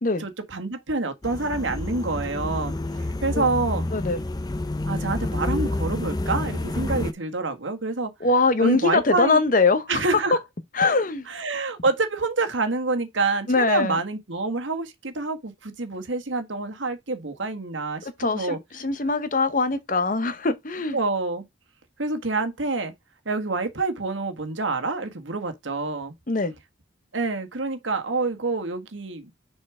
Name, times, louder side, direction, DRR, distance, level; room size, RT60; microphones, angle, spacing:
voice 1, 0.2-2.8 3.2-3.9 4.9-8.1 8.6-9.4 9.9-10.4 11.3-18.6 20.9-21.4 22.0-22.9 23.2-26.1 27.1-29.3, right 3 dB, 80° right, 1.6 m, -27 dB
sound 1, 1.2-7.1, left 2 dB, 20° left, 0.5 m, -29 dB
voice 2, 3.9-4.2 8.2-10.2 10.7-11.3 13.5-14.0 18.0-21.0 26.3-26.5, left 3 dB, 45° left, 0.9 m, -22 dB
6.6 x 4.3 x 4.8 m
head